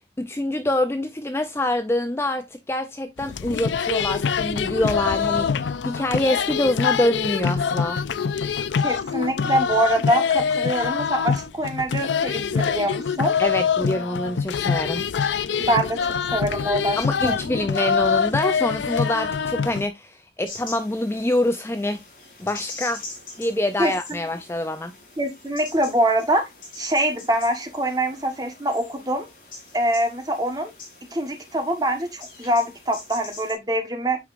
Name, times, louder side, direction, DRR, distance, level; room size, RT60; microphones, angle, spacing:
voice 1, 0.2-8.0 13.4-15.1 17.0-22.0 22.4-23.0 23.4-24.9, left 1 dB, 15° left, 0.4 m, -25 dB
sound 1, 3.2-19.9, left 6 dB, 85° left, 0.5 m, -24 dB
voice 2, 8.8-13.3 15.6-16.0 16.3-17.0 17.2-17.4 23.8-24.2 25.2-26.5 26.7-29.3 29.7-30.7 31.1-34.2, right 1 dB, 20° right, 1.3 m, -24 dB
sound 2, 20.5-33.5, left 3 dB, 50° left, 3.6 m, -43 dB
9.1 x 4.8 x 2.5 m
head